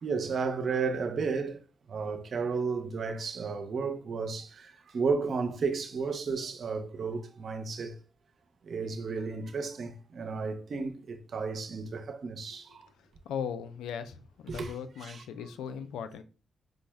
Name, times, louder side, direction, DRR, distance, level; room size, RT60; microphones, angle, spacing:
voice 1, 0.0-1.6 1.9-8.0 8.6-12.9 14.5-15.2, right 5 dB, 60° right, 0.6 m, -33 dB
voice 2, 13.3-16.2, left 7 dB, 85° left, 0.4 m, -38 dB
5.0 x 2.0 x 3.4 m
supercardioid pair, 50°, 0 cm